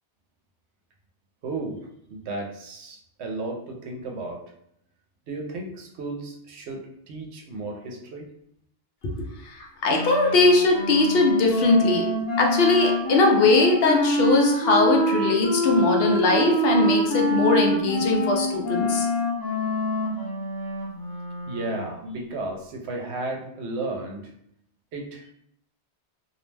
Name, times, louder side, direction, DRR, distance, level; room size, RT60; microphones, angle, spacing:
voice 1, 1.4-1.8 2.1-4.4 5.3-8.3 21.5-24.3 24.9-25.3, right 2 dB, 80° right, 1 dB, 0.9 m, -34 dB
voice 2, 9.5-12.1 12.4-19.1, left 3 dB, 65° left, 1 dB, 0.7 m, -20 dB
Wind instrument woodwind instrument, 9.9-22.0, equal, 25° left, 0.6 m, -26 dB
2.5 x 2.1 x 3.2 m, 0.72 s
omnidirectional pair, 1.1 m